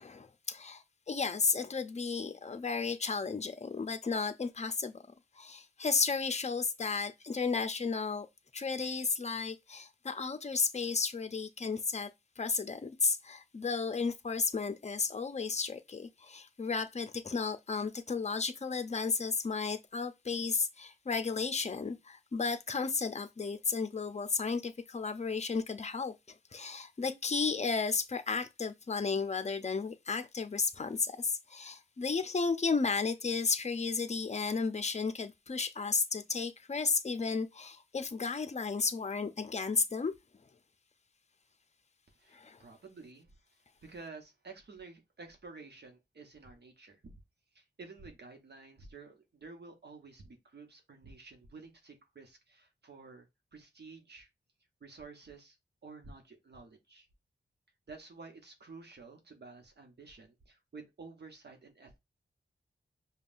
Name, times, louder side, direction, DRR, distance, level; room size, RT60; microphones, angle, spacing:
voice 1, 0.0-4.9 5.4-8.3 8.5-12.1 12.4-26.1 26.5-40.1 42.3-42.6, left 4 dB, 35° left, 0.6 m, -33 dB
voice 2, 42.2-43.3 43.8-47.0 47.5-54.3 54.8-55.6 55.8-57.1 57.9-62.0, right 4 dB, 65° right, 1.0 m, -51 dB
5.3 x 2.3 x 2.5 m
cardioid pair, 55°, 19 cm